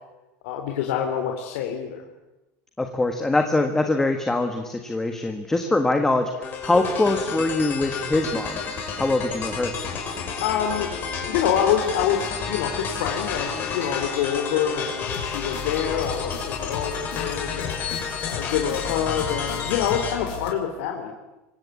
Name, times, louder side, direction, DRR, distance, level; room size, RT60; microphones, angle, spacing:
voice 1, 0.4-2.0 10.4-10.9 11.3-18.0 18.2-21.1, left 9 dB, 70° left, 2 dB, 3.9 m, -26 dB
voice 2, 2.8-8.6 9.0-9.7, left 2 dB, 5° left, 5 dB, 1.5 m, -23 dB
sound 1, 6.4-20.1, left 6 dB, 25° left, 5.9 m, -31 dB
sound 2, 15.1-20.5, left 8 dB, 50° left, 6.3 m, -36 dB
27.5 x 24.5 x 8.5 m, 1.0 s
cardioid pair, 180°, 7 cm